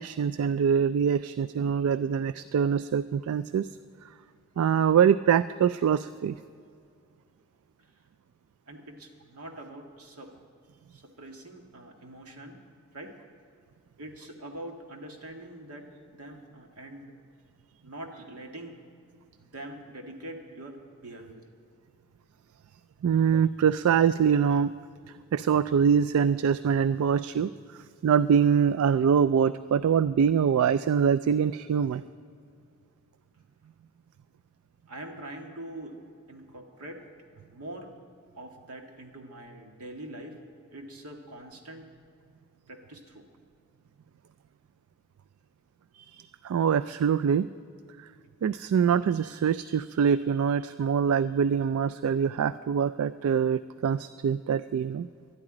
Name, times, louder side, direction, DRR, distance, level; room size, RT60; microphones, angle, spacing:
voice 1, 0.0-3.7 4.6-6.4 23.0-24.7 25.3-32.0 45.9-47.5 48.0-48.1 48.4-55.1, right 7 dB, 70° right, 14 dB, 0.3 m, -24 dB
voice 2, 8.7-10.3 10.9-12.6 12.9-13.2 14.0-17.1 17.8-18.8 19.4-21.4 34.9-36.0 36.3-37.1 37.5-37.9 38.3-40.4 40.7-41.8 42.7-43.3, right 1 dB, 85° right, 3 dB, 1.7 m, -43 dB
12.0 x 8.8 x 9.7 m, 2.4 s
head